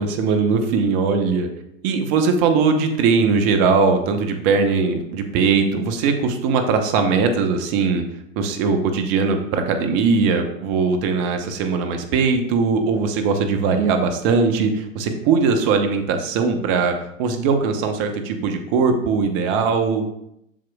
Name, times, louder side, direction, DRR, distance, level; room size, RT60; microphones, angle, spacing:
voice 1, 0.0-1.5 1.8-8.0 8.4-20.0, right 5 dB, 50° right, 6 dB, 1.1 m, -20 dB
7.5 x 6.5 x 2.4 m, 0.80 s
hypercardioid pair, 95°, 39 cm